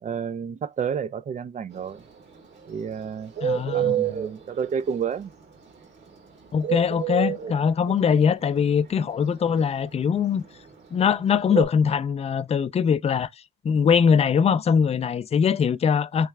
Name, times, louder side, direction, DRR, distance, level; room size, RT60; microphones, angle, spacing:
voice 1, 0.0-2.0 2.7-3.3 3.7-5.3, right 7 dB, 40° right, 0.4 m, -30 dB
Bird, 1.7-11.7, right 9 dB, 60° right, 1.4 m, -29 dB
voice 2, 3.4-4.1 6.5-10.4 10.9-13.3 13.6-16.3, left 7 dB, 30° left, 0.4 m, -22 dB
3.3 x 3.1 x 3.4 m
cardioid pair, 90°, 20 cm